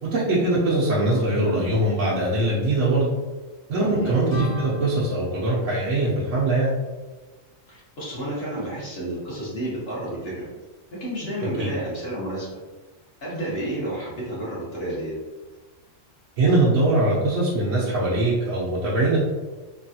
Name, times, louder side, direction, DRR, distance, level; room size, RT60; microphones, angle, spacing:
voice 1, 0.0-3.1 3.7-6.7 11.6-11.7 16.4-19.2, right 2 dB, 90° right, -7 dB, 1.0 m, -22 dB
voice 2, 3.9-4.2 7.7-10.5 10.9-12.5 13.2-15.1, right 1 dB, 55° left, -7 dB, 1.2 m, -31 dB
sound 1, 4.3-7.0, left 2 dB, 40° left, 0.8 m, -38 dB
3.3 x 2.3 x 2.6 m, 1.2 s
omnidirectional pair, 1.3 m